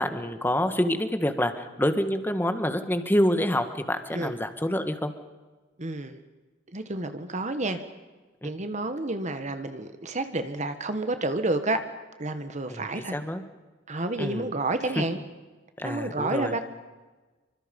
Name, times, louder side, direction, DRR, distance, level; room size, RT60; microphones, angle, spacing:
voice 1, 0.0-5.1 8.4-8.5 12.7-13.4 14.2-14.5 14.9-15.0 15.8-16.6, left 1 dB, 10° left, 9 dB, 1.6 m, -27 dB
voice 2, 5.8-6.2 6.7-7.8 8.4-11.8 12.2-13.1 13.9-15.2 15.8-16.6, right 2 dB, 40° right, 9 dB, 1.4 m, -30 dB
27.0 x 25.0 x 5.4 m, 1.3 s
head